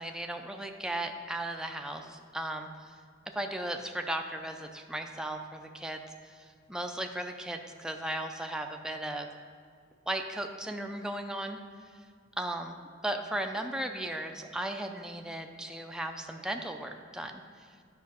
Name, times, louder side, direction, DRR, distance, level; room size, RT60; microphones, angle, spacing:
voice 1, 0.0-3.0 3.3-6.1 6.3-9.3 10.1-11.6 12.4-12.8 13.0-17.3, right 1 dB, 5° right, 4 dB, 0.4 m, -36 dB
9.5 x 5.7 x 4.2 m, 2.2 s
head